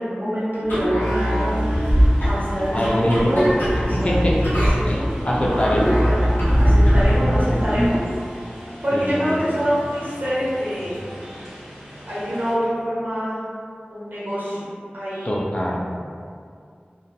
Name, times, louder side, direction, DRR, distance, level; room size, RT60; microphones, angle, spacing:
voice 1, 0.0-3.5 3.7-5.1 6.6-8.1 8.6-11.0 12.1-13.4 13.9-14.7 14.9-15.4, equal, 60° right, -10 dB, 1.0 m, -26 dB
sound 1, 0.6-7.9, equal, 70° left, 0.8 m, -20 dB
sound 2, 0.8-13.1, equal, 80° right, 0.6 m, -41 dB
sound 3, 1.0-12.5, equal, 5° right, 1.0 m, -43 dB
voice 2, 2.7-3.4 3.9-4.4 4.8-5.9 8.9-9.3 15.2-15.8, equal, 35° left, -4 dB, 0.4 m, -23 dB
2.6 x 2.2 x 2.2 m, 2.2 s
wide cardioid pair, 40°, 4 cm